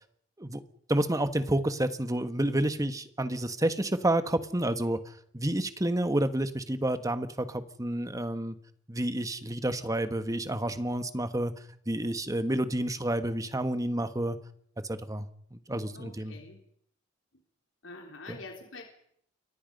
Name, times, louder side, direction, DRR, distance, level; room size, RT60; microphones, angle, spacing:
voice 1, 0.9-8.5 8.9-11.5 11.9-14.4 14.9-15.2 15.5-16.4 18.3-18.4, right 1 dB, 20° right, 10 dB, 1.6 m, -29 dB
voice 2, 15.9-16.6 17.8-18.8, left 3 dB, 80° left, 2 dB, 3.8 m, -45 dB
29.5 x 24.0 x 5.5 m, 0.68 s
head